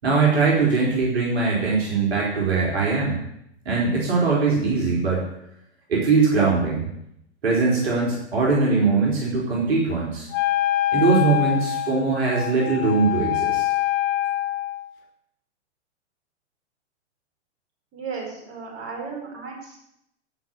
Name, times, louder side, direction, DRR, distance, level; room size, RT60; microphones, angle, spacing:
voice 1, 0.0-3.2 3.6-5.2 5.9-6.9 7.4-10.3 10.9-13.6, right 4 dB, 60° right, -3 dB, 4.5 m, -21 dB
Wind instrument woodwind instrument, 10.3-14.9, left 13 dB, 35° left, 1.8 m, -25 dB
voice 2, 17.9-19.8, right 5 dB, 35° right, -1 dB, 5.4 m, -35 dB
16.5 x 5.6 x 8.5 m, 0.77 s
figure-of-eight pair, 100°, 35 cm